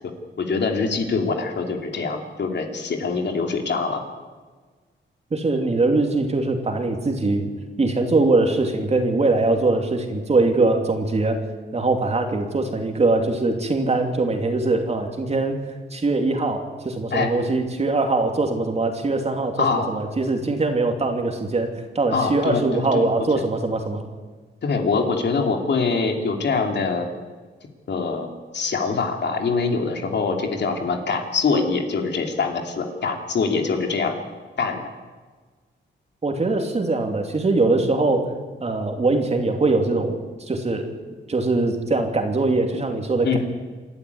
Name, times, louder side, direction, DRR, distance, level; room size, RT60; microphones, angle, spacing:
voice 1, 0.4-4.0 17.1-17.3 19.6-19.9 22.1-23.1 24.6-27.1 27.9-28.3 28.5-34.2 34.6-34.8 43.2-43.4, left 4 dB, 60° left, 4 dB, 2.9 m, -24 dB
voice 2, 5.3-7.5 7.8-11.4 11.7-15.6 15.9-24.0 36.2-38.2 38.6-40.9 41.3-43.4, right 3 dB, 35° right, 4 dB, 2.9 m, -22 dB
27.5 x 12.0 x 9.5 m, 1.4 s
wide cardioid pair, 140°, 20 cm